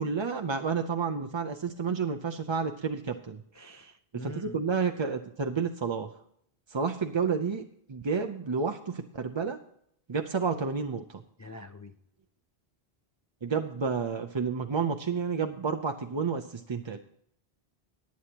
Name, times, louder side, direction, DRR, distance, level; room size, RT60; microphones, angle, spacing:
voice 1, 0.0-3.4 4.1-6.1 6.7-9.6 10.1-11.2 13.4-17.0, right 5 dB, 35° right, 6 dB, 0.5 m, -30 dB
voice 2, 3.5-4.6 11.4-11.9, left 2 dB, 25° left, 7 dB, 0.4 m, -45 dB
19.0 x 8.5 x 2.8 m, 0.70 s
omnidirectional pair, 1.1 m